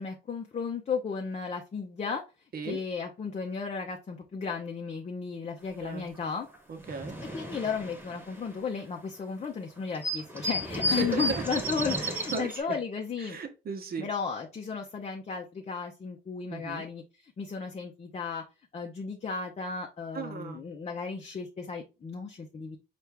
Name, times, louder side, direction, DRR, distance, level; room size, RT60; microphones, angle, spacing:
voice 1, 0.0-2.2 2.6-6.5 7.3-13.4 14.0-18.4 18.7-22.8, left 5 dB, 35° left, 0.6 m, -34 dB
sound 1, 6.2-6.3 6.5-9.1 9.4-9.5 9.8-12.6, equal, 10° right, 1.2 m, -33 dB
voice 2, 6.7-7.2 10.9-11.3 12.3-12.6 13.2-14.1 16.5-16.8 20.1-20.6, right 4 dB, 50° right, 1.0 m, -35 dB
4.4 x 2.5 x 3.4 m
cardioid pair, 90°, 20 cm